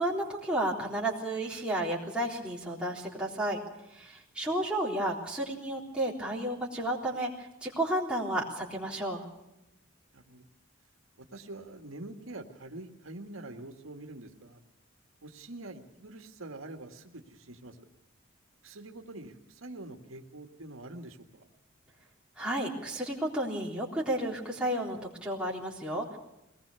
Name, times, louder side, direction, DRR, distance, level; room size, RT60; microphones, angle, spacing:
voice 1, 0.0-3.6 3.9-7.3 7.6-9.2 22.4-26.2, right 1 dB, 5° right, -4 dB, 3.7 m, -32 dB
voice 2, 10.1-10.5 11.3-14.6 15.2-17.9 18.6-21.5, right 2 dB, 85° right, 4 dB, 1.8 m, -45 dB
23.0 x 19.0 x 6.9 m, 0.90 s
head